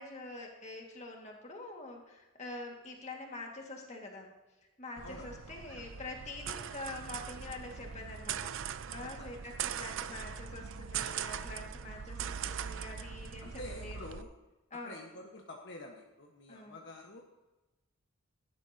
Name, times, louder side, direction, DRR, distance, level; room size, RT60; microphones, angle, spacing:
voice 1, 0.0-4.3 4.8-14.0 14.7-15.0 16.5-16.8, left 2 dB, 30° left, 1 dB, 1.9 m, -45 dB
voice 2, 5.0-5.6 9.0-9.3 13.4-14.3 14.8-17.2, left 1 dB, 55° left, 0 dB, 1.3 m, -48 dB
sound 1, 5.0-14.2, right 8 dB, 60° right, 0.5 m, -41 dB
15.5 x 11.5 x 2.8 m, 1.1 s
head